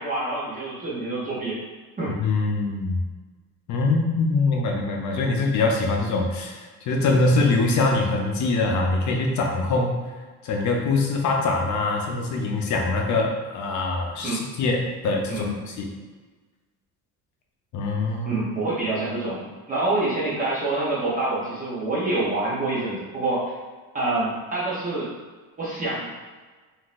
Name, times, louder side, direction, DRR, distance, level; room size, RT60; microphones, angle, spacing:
voice 1, 0.0-1.6 2.0-2.2 14.2-14.4 15.3-15.5 18.2-23.5 23.9-25.1 25.6-26.1, right 2 dB, 25° right, -7 dB, 0.7 m, -26 dB
voice 2, 2.2-3.1 3.7-10.0 10.4-15.5 15.8-15.9 17.7-18.4, left 3 dB, 55° left, 1 dB, 0.6 m, -23 dB
3.7 x 2.6 x 2.4 m, 1.4 s
cardioid pair, 155°, 36 cm